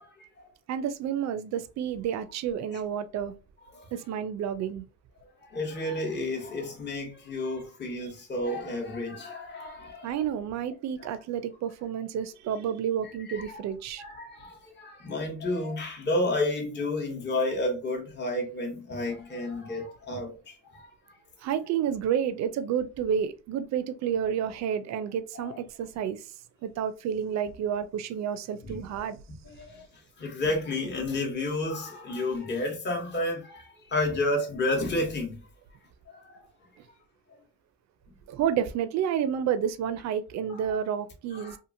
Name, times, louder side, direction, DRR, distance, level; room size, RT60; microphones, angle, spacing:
voice 1, 0.0-0.5 3.7-3.9 5.4-10.1 13.2-13.6 14.0-21.2 25.3-25.5 28.6-28.8 29.4-29.9 30.2-35.4 36.1-36.4 40.5-40.6 41.3-41.6, left 2 dB, 35° left, 0.9 m, -31 dB
voice 2, 0.7-3.3 3.9-4.8 10.0-14.0 21.4-26.3 26.6-29.2 36.8-36.9 38.3-41.6, right 8 dB, 65° right, 0.4 m, -30 dB
2.8 x 2.5 x 2.5 m
cardioid pair, 90°, 30 cm